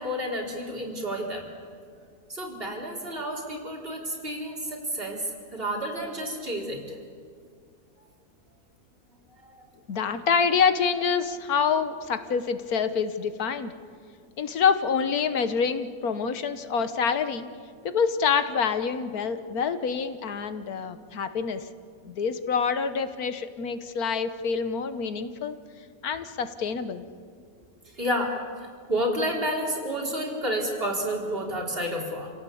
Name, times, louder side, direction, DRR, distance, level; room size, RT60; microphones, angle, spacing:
voice 1, 0.0-1.5 2.3-7.0 9.4-9.7 27.9-32.3, equal, 40° right, -1 dB, 4.4 m, -30 dB
voice 2, 9.9-13.7 14.4-17.5 17.8-21.7 22.0-25.6 26.0-27.0, left 6 dB, 80° left, 10 dB, 1.6 m, -26 dB
28.0 x 17.5 x 8.5 m, 2.1 s
omnidirectional pair, 1.5 m